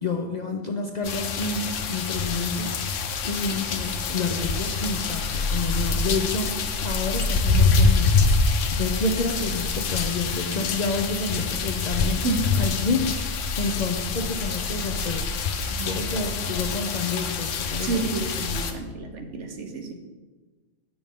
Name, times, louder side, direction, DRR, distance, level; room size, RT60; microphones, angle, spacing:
voice 1, 0.0-2.9 3.2-12.2 12.6-18.0, left 3 dB, 50° left, 3 dB, 0.5 m, -29 dB
sound 1, 1.0-18.7, left 4 dB, 85° left, 1.0 m, -25 dB
voice 2, 17.8-19.9, right 3 dB, 75° right, 4 dB, 1.2 m, -30 dB
8.6 x 6.2 x 3.6 m, 1.3 s
omnidirectional pair, 1.3 m